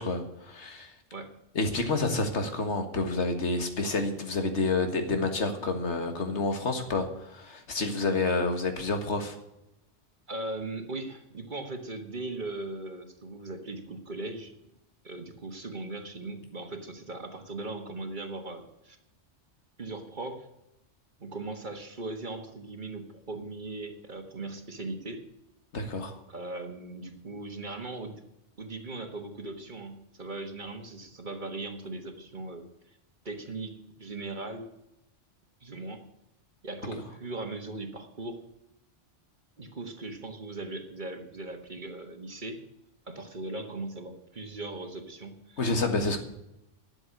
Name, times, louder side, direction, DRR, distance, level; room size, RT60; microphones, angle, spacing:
voice 1, 0.0-0.9 1.6-9.4 25.7-26.2 45.6-46.2, left 3 dB, 70° left, 6 dB, 1.8 m, -29 dB
voice 2, 10.3-14.5 15.0-19.0 19.8-20.5 21.2-25.2 26.3-28.2 28.6-32.7 33.2-33.7 34.0-34.7 35.6-36.0 36.6-38.4 39.6-42.6 43.1-45.6, right 2 dB, 40° right, 5 dB, 1.6 m, -39 dB
11.5 x 7.3 x 9.9 m, 0.88 s
omnidirectional pair, 1.2 m